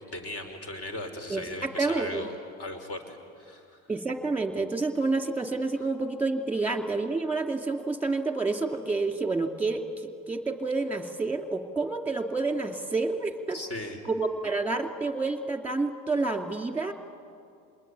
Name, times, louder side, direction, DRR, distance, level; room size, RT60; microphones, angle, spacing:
voice 1, 0.1-2.3 2.6-3.8 13.5-14.0, left 1 dB, 45° left, 6 dB, 4.7 m, -37 dB
voice 2, 1.3-2.3 3.9-13.6 14.0-16.9, right 3 dB, 5° right, 6 dB, 2.7 m, -29 dB
27.0 x 20.5 x 9.9 m, 2.5 s
supercardioid pair, 100°, 32 cm